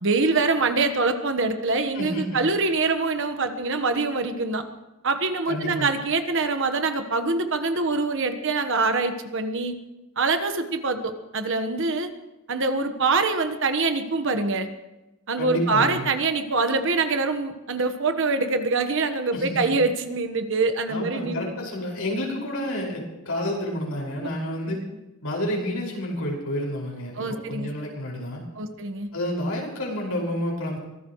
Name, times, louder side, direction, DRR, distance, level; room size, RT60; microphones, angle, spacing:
voice 1, 0.0-4.6 5.0-9.8 10.2-12.1 12.5-14.7 15.3-21.5 27.2-27.7 28.6-29.1, right 3 dB, 60° right, 8 dB, 1.3 m, -24 dB
voice 2, 1.9-2.3 5.5-5.9 15.4-16.1 19.3-19.6 20.9-24.8 25.2-28.5 29.1-30.8, left 1 dB, 75° left, -1 dB, 5.6 m, -29 dB
24.0 x 17.5 x 3.2 m, 1.0 s
head